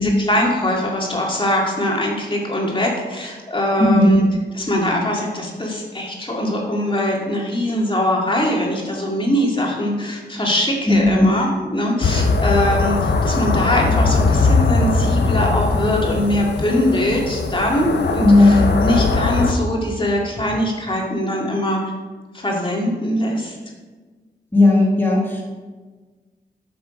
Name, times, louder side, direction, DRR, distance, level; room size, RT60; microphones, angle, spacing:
voice 1, 0.0-4.2 4.5-21.8 22.3-23.6, left 1 dB, 30° left, -1 dB, 2.1 m, -22 dB
voice 2, 3.8-4.2 10.9-11.3 18.2-18.7 24.5-25.4, left 2 dB, 10° left, -3 dB, 2.0 m, -14 dB
sound 1, 12.0-19.5, left 3 dB, 80° left, 0.8 m, -20 dB
8.3 x 6.1 x 5.1 m, 1.3 s
wide cardioid pair, 75°, 18 cm